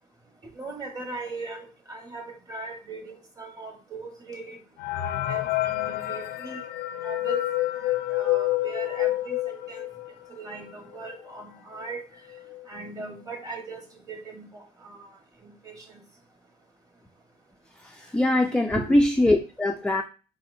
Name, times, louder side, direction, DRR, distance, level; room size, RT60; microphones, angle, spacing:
voice 1, 0.5-4.6 4.9-6.6 7.0-7.4 7.8-9.9 10.3-12.0 12.7-13.8 14.1-15.2 15.4-15.8 18.7-19.0, right 3 dB, 20° right, 3 dB, 1.3 m, -39 dB
sound 1, 4.8-10.2 10.7-10.8 11.0-11.1 11.8-11.9 12.3-12.6, left 16 dB, 75° left, 0.5 m, -28 dB
voice 2, 17.8-20.0, left 1 dB, 5° left, 3 dB, 0.4 m, -22 dB
4.8 x 4.2 x 2.6 m, 0.34 s
cardioid pair, 110°, 17 cm